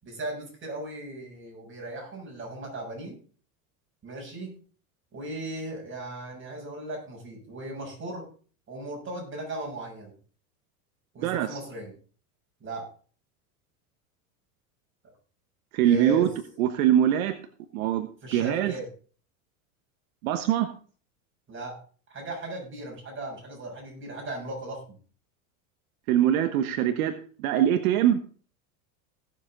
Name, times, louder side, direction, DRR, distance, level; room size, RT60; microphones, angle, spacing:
voice 1, 0.0-3.2 4.0-4.6 5.1-8.3 8.7-10.1 11.1-11.9 12.6-12.9 15.8-16.3 18.2-18.9 21.5-21.8 22.1-25.0, right 1 dB, 30° right, 0 dB, 6.9 m, -37 dB
voice 2, 11.2-11.6 15.7-16.3 16.6-17.4 17.7-18.7 20.2-20.7 26.1-28.2, right 11 dB, 80° right, 8 dB, 1.3 m, -23 dB
17.5 x 7.4 x 3.8 m, 0.40 s
supercardioid pair, 115°, 42 cm